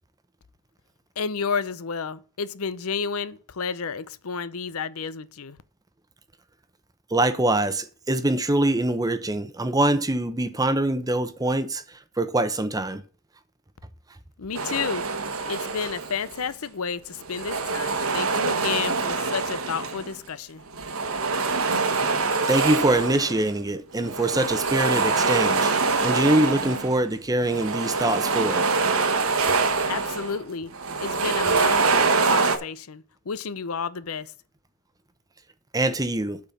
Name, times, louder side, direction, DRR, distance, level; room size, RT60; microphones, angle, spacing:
voice 1, 1.2-5.6 14.4-15.0 15.5-20.6 29.8-30.7 31.0-34.3, left 6 dB, 80° left, 0.7 m, -31 dB
voice 2, 7.1-13.0 22.5-25.7 26.0-28.7 35.7-36.4, right 1 dB, 15° right, 0.8 m, -24 dB
sound 1, 14.5-16.4 17.2-20.2 20.7-23.5 24.0-27.0 27.4-30.4 30.7-32.6, right 4 dB, 75° right, 1.2 m, -25 dB
8.5 x 4.4 x 7.1 m
head